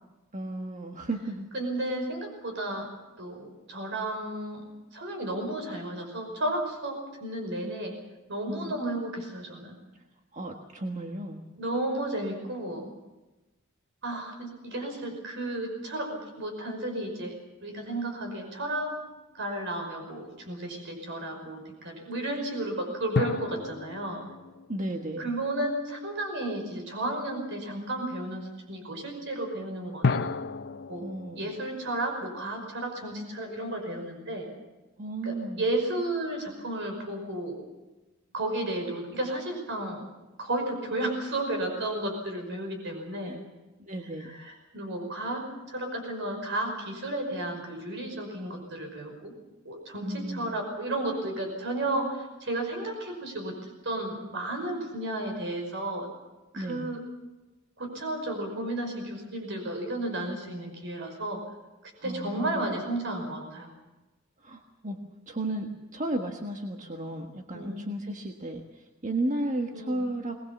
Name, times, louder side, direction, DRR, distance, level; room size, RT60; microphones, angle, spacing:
voice 1, 0.3-1.5 8.5-8.7 9.9-10.0 10.3-11.4 24.7-25.3 31.0-31.4 35.0-35.6 43.2-43.4 43.8-44.4 50.0-50.5 56.5-56.9 62.0-62.8 64.4-65.0 65.3-70.4, right 1 dB, 35° right, 3 dB, 1.5 m, -34 dB
voice 2, 1.5-2.9 3.2-4.6 4.9-7.9 8.3-9.8 11.6-12.9 14.0-17.4 17.6-18.9 19.3-24.2 25.2-30.3 30.9-31.1 31.4-34.5 35.2-37.6 38.3-40.0 40.4-43.4 44.2-49.3 49.6-56.1 56.5-57.0 57.8-61.4 61.8-63.7 67.5-67.8 69.7-70.0, right 1 dB, 55° right, 3 dB, 5.4 m, -33 dB
sound 1, 18.8-19.5 23.1-26.0 30.0-33.3, left 4 dB, 55° left, 0.7 m, -34 dB
22.0 x 20.5 x 7.2 m, 1.1 s
head